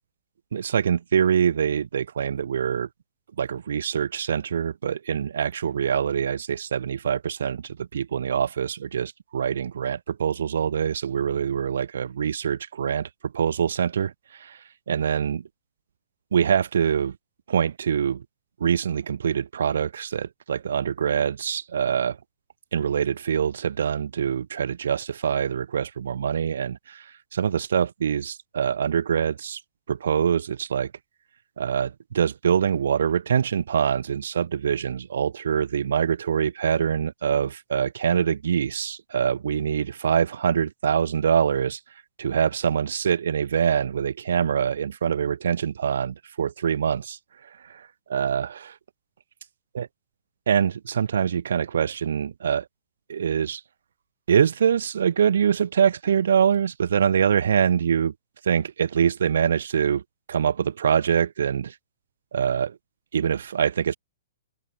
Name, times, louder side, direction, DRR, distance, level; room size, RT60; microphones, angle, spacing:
voice 1, 0.5-2.9 3.4-15.5 16.3-17.2 17.5-18.2 18.6-22.2 22.7-29.6 29.9-30.9 31.6-41.8 42.2-48.8 49.7-49.9 50.5-52.7 53.1-53.6 54.3-58.1 58.4-60.0 60.3-61.8 62.3-62.8 63.1-64.0, right 8 dB, 80° right, 1.9 m, -24 dB
open air
hypercardioid pair, 145°, 0 cm